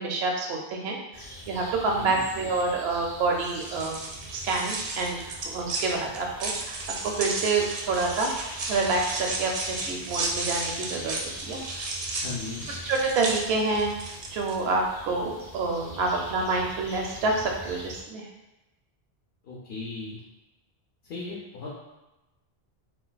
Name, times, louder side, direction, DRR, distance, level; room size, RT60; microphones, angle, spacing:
voice 1, 0.0-4.0 4.3-8.3 8.7-11.9 12.9-14.0 14.3-18.3, right 3 dB, 85° right, 0 dB, 0.8 m, -28 dB
sound 1, 1.1-18.0, equal, 35° left, 0.6 m, -43 dB
sound 2, 3.4-14.6, right 2 dB, 50° right, 0.4 m, -34 dB
voice 2, 12.2-12.7 19.4-20.2 21.0-21.7, left 3 dB, 70° left, -5 dB, 0.9 m, -37 dB
2.6 x 2.2 x 3.9 m, 1.0 s
omnidirectional pair, 1.0 m